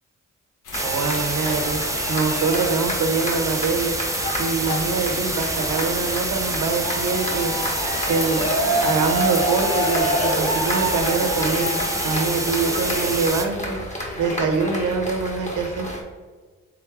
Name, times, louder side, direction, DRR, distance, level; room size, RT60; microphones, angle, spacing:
sound 1, 0.6-13.3, left 3 dB, 70° left, 0.9 m, -37 dB
sound 2, 0.7-16.0, equal, 20° left, 1.3 m, -28 dB
sound 3, 0.7-13.5, right 2 dB, 10° right, 0.6 m, -27 dB
voice 1, 0.8-1.8 2.1-4.0 4.4-7.5 8.1-13.8 14.2-15.9, right 4 dB, 70° right, 5 dB, 0.7 m, -24 dB
3.6 x 3.4 x 3.4 m, 1.5 s
supercardioid pair, 60°, 32 cm